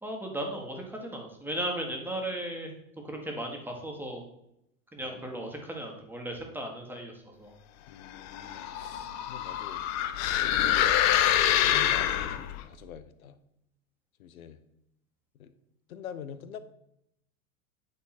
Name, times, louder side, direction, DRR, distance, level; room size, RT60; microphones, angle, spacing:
voice 1, 0.0-2.7 3.0-4.2 4.9-7.1 7.4-7.5, right 1 dB, 5° right, 1 dB, 1.6 m, -36 dB
voice 2, 7.9-9.8 10.2-10.5 11.3-13.4 14.2-14.6 15.4-15.5 15.9-16.6, left 8 dB, 85° left, 12 dB, 0.8 m, -45 dB
sound 1, 8.2-12.6, left 11 dB, 40° left, 0.7 m, -26 dB
8.9 x 3.6 x 5.9 m, 0.81 s
hypercardioid pair, 100°, 41 cm